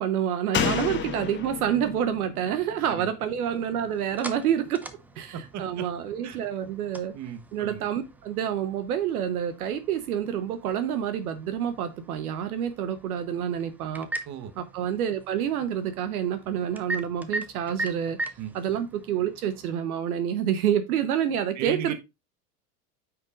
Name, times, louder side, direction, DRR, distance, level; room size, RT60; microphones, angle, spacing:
voice 1, 0.0-4.8 5.2-7.1 7.5-14.1 14.6-18.2 18.5-21.9, right 9 dB, 65° right, 1.0 m, -28 dB
Slam, 0.5-4.0 4.3-4.4, left 6 dB, 25° left, 1.3 m, -31 dB
sound 1, 3.4-19.8, right 2 dB, 5° right, 0.3 m, -41 dB
voice 2, 5.3-5.9 6.2-6.4 7.1-7.9 14.3-14.5 18.4-18.5 21.5-21.9, right 8 dB, 35° right, 1.2 m, -35 dB
9.1 x 5.8 x 2.4 m
hypercardioid pair, 85°, 47 cm